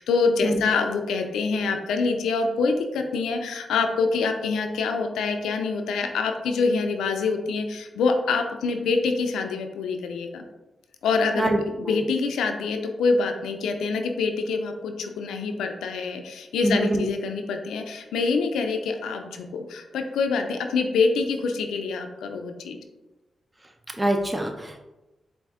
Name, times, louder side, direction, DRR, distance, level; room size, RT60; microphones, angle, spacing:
voice 1, 0.0-10.4 11.0-22.8, left 4 dB, 90° left, 5 dB, 0.4 m, -25 dB
voice 2, 16.6-17.1 24.0-24.9, right 1 dB, 20° right, 3 dB, 0.6 m, -24 dB
4.3 x 2.6 x 3.5 m, 1.0 s
supercardioid pair, 45°, 0 cm